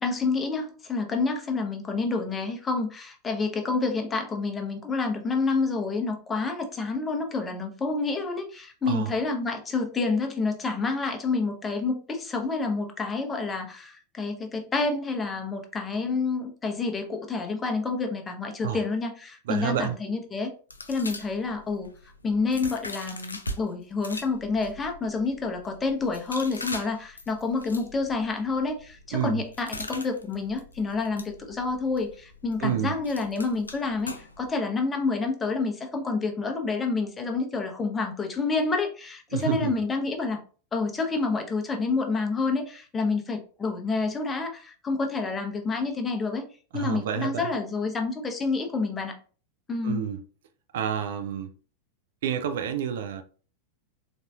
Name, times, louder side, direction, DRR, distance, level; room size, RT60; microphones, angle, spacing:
voice 1, 0.0-20.5 20.9-21.9 22.2-40.4 40.7-46.4 46.7-49.1 49.7-50.0, left 4 dB, 15° left, 0.7 m, -28 dB
voice 2, 8.8-9.1 18.6-18.8 19.5-20.0 29.1-29.4 32.6-33.0 39.3-39.7 46.7-47.5 49.8-50.2 50.7-51.5 52.2-53.2, right 9 dB, 55° right, 0.4 m, -29 dB
sound 1, 20.7-23.6 24.0-34.5, left 1 dB, 80° left, 0.4 m, -42 dB
4.0 x 2.6 x 2.3 m
figure-of-eight pair, 90°, 0 cm